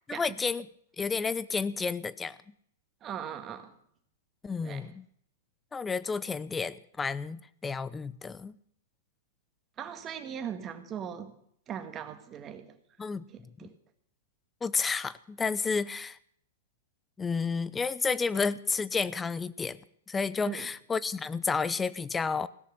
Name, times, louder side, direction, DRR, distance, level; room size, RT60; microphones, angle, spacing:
voice 1, 0.1-0.7 1.0-2.4 4.4-5.0 5.7-8.6 13.0-13.2 13.6-13.7 14.6-16.2 17.2-19.8 20.1-22.5, left 5 dB, 15° left, 18 dB, 0.6 m, -31 dB
voice 2, 3.0-3.7 4.6-4.9 9.8-11.4 11.7-12.8 13.3-13.7 20.4-20.7, right 8 dB, 25° right, 7 dB, 1.9 m, -39 dB
17.0 x 6.6 x 9.7 m, 0.67 s
hypercardioid pair, 125°, 0 cm